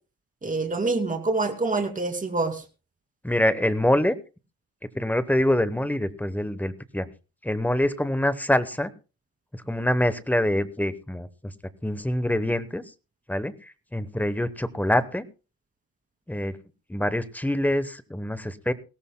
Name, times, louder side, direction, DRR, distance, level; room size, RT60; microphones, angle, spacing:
voice 1, 0.4-2.6, right 3 dB, 25° right, 5 dB, 2.5 m, -26 dB
voice 2, 3.2-4.2 4.9-7.1 7.4-8.9 9.5-11.5 11.8-12.8 13.3-15.3 16.3-16.6 16.9-18.7, left 1 dB, 5° left, 13 dB, 0.9 m, -25 dB
20.5 x 17.5 x 2.2 m, 0.33 s
cardioid pair, 125°, 34 cm